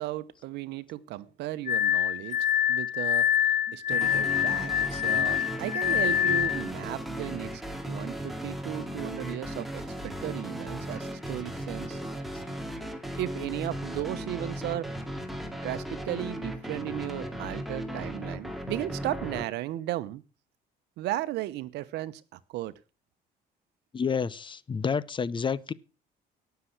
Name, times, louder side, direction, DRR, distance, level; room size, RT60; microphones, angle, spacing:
voice 1, 0.0-2.4 2.7-3.3 3.7-12.0 12.5-12.8 13.2-14.9 15.6-20.2 21.0-22.7, right 15 dB, 80° right, 1.0 m, -35 dB
Glass, 1.7-6.7, left 10 dB, 45° left, 1.1 m, -26 dB
sound 1, 3.9-19.5, equal, ahead, 2.3 m, -36 dB
voice 2, 23.9-25.7, left 6 dB, 30° left, 0.8 m, -29 dB
18.0 x 6.9 x 6.0 m
cardioid pair, 110°, 17 cm